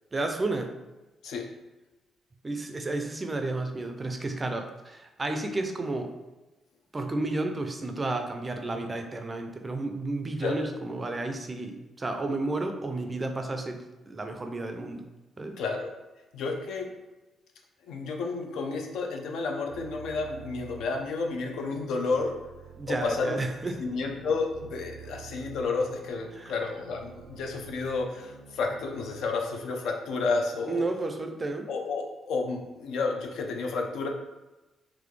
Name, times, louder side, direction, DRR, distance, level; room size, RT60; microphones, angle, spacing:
voice 1, 0.1-0.7 2.4-6.1 6.9-15.1 15.4-15.6 22.8-23.8 26.3-26.5 30.7-31.7, right 2 dB, 20° right, 5 dB, 0.4 m, -32 dB
voice 2, 15.6-15.9 16.3-16.9 17.9-22.3 22.8-23.4 23.8-30.8 31.7-34.1, left 4 dB, 85° left, 2 dB, 0.6 m, -31 dB
sound 1, 19.6-29.2, right 7 dB, 85° right, 0.4 m, -49 dB
4.0 x 3.0 x 3.2 m, 1.1 s
cardioid pair, 160°, 0 cm